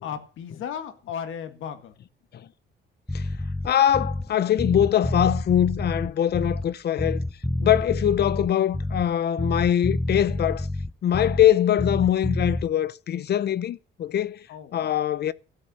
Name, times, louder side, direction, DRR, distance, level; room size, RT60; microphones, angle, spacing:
voice 1, 0.0-2.0 11.1-11.2 14.5-14.9, left 8 dB, 80° left, 1.9 m, -35 dB
Bass guitar, 3.1-4.3 4.6-6.7 7.0-9.1 9.4-11.5 11.8-12.7, left 1 dB, 5° left, 0.5 m, -28 dB
voice 2, 3.6-7.2 7.6-10.7 11.0-14.5 14.7-15.3, left 10 dB, 55° left, 0.7 m, -22 dB
13.0 x 8.2 x 6.8 m
cardioid pair, 90°, 20 cm